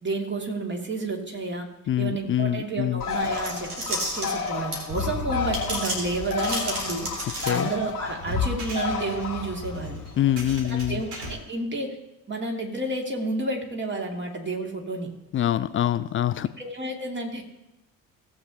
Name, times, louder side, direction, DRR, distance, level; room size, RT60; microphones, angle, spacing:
voice 1, 0.0-1.7 2.0-10.0 10.6-12.0 12.3-15.1 16.6-17.4, right 2 dB, 25° right, 1 dB, 2.5 m, -31 dB
voice 2, 1.9-3.0 7.5-7.7 10.2-11.0 15.3-16.5, left 11 dB, 30° left, 13 dB, 0.4 m, -25 dB
Bird, 3.0-10.4, left 5 dB, 90° left, 0.9 m, -32 dB
sound 1, 3.1-5.0 5.5-7.9, right 1 dB, 85° right, 2.3 m, -32 dB
sound 2, 4.9-11.3, left 3 dB, 55° right, 2.8 m, -35 dB
17.5 x 8.0 x 2.9 m, 0.93 s
figure-of-eight pair, 50°, 44 cm